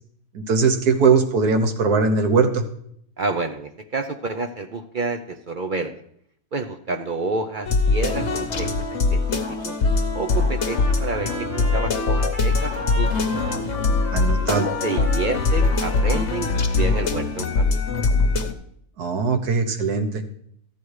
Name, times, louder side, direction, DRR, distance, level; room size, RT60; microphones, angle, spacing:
voice 1, 0.3-2.6 14.1-14.7 19.0-20.2, right 4 dB, 90° right, 7 dB, 1.7 m, -20 dB
voice 2, 3.2-6.0 6.5-9.8 10.1-13.1 14.1-17.8, right 3 dB, 55° right, 7 dB, 0.5 m, -29 dB
sound 1, 7.6-18.5, left 3 dB, 50° left, 1.2 m, -22 dB
Trumpet, 10.6-17.5, left 1 dB, 10° right, 2.0 m, -35 dB
13.5 x 9.3 x 4.8 m, 0.68 s
omnidirectional pair, 1.6 m